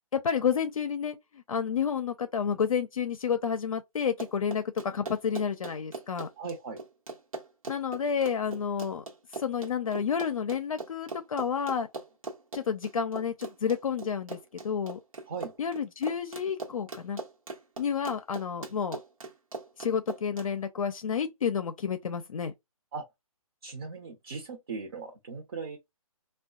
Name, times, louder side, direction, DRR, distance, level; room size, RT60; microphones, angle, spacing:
voice 1, 0.1-6.3 7.7-9.0 9.3-11.9 12.5-14.4 14.6-15.0 15.6-17.2 17.8-19.0 19.8-22.5, left 7 dB, 65° left, 0.5 m, -30 dB
Run, 4.0-20.5, right 3 dB, 65° right, 1.1 m, -41 dB
voice 2, 6.4-6.8 15.3-15.5 22.9-23.0 23.6-25.8, right 4 dB, 45° right, 0.8 m, -38 dB
3.5 x 2.3 x 2.3 m
hypercardioid pair, 160°, 19 cm